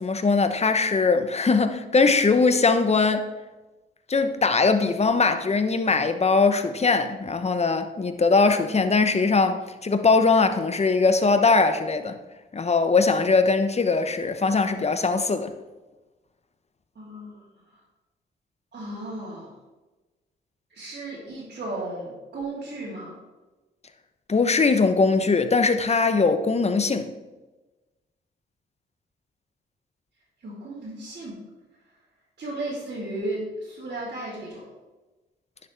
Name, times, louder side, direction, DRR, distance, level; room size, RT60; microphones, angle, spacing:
voice 1, 0.0-3.3 4.1-12.2 12.5-15.5 24.3-27.1, left 4 dB, 30° left, 0.9 m, -21 dB
voice 2, 16.9-17.5 18.7-19.5 20.7-23.1 30.4-31.4 32.4-34.7, right 2 dB, 55° right, 3.3 m, -34 dB
10.5 x 6.9 x 3.5 m
supercardioid pair, 55°, 20 cm